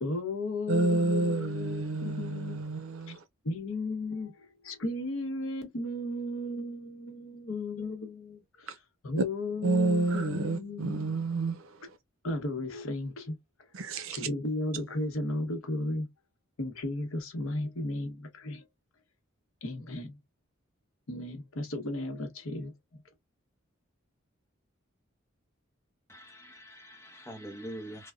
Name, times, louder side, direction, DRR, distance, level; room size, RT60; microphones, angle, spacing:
voice 1, 0.0-2.6 3.4-4.3 4.6-8.8 9.0-11.2 12.2-13.4 14.1-16.1 16.6-18.6 19.6-20.2 21.1-23.0, left 2 dB, 80° left, 0.9 m, -35 dB
voice 2, 0.7-3.2 9.2-9.3 9.6-11.7 13.7-14.3, right 3 dB, 75° right, 0.6 m, -29 dB
voice 3, 26.1-28.1, right 1 dB, 15° left, 0.8 m, -44 dB
3.3 x 2.2 x 2.3 m
head